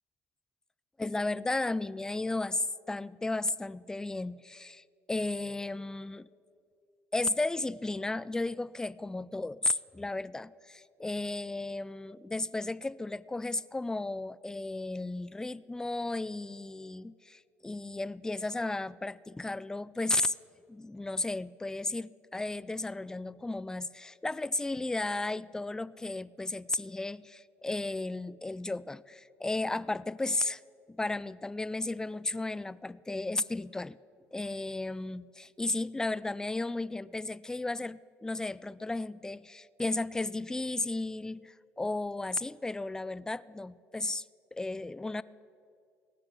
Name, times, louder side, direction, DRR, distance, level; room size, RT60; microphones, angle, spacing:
voice 1, 1.0-6.3 7.1-20.3 20.7-30.6 30.9-34.0 34.3-44.2 44.5-45.2, left 2 dB, 10° left, 19 dB, 0.3 m, -34 dB
16.5 x 5.9 x 8.3 m, 2.5 s
hypercardioid pair, 65°, 6 cm